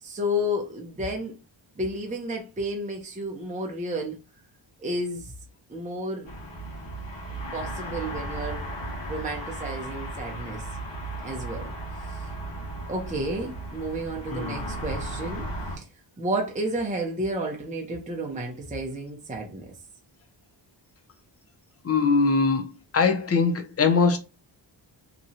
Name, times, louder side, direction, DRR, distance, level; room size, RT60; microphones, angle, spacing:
voice 1, 0.0-1.3 1.8-4.2 4.8-5.3 5.7-6.3 7.5-8.7 9.1-10.7 11.2-11.7 12.1-12.3 12.9-15.5 15.8-15.9 16.2-19.7, equal, 15° right, 0.6 m, -31 dB
sound 1, 6.2-15.8, right 1 dB, 65° left, 1.3 m, -35 dB
voice 2, 14.3-14.6 21.8-22.7 22.9-24.2, left 4 dB, 30° left, 0.6 m, -22 dB
2.9 x 2.2 x 2.7 m
wide cardioid pair, 100°, 46 cm